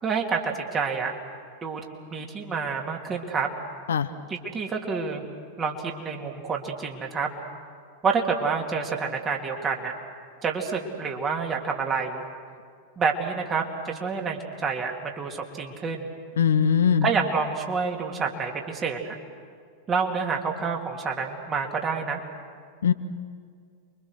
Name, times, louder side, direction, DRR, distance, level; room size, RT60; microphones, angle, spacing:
voice 1, 0.0-1.2 1.6-1.8 2.1-3.5 4.3-5.2 5.6-7.3 8.0-9.9 10.4-12.2 13.0-16.1 17.0-19.2 19.9-22.2, right 5 dB, 25° right, 1 dB, 3.0 m, -28 dB
voice 2, 16.4-17.1 22.8-22.9, left 7 dB, 65° left, 11 dB, 1.0 m, -20 dB
28.5 x 24.0 x 6.5 m, 2.1 s
figure-of-eight pair, 90°, 0 cm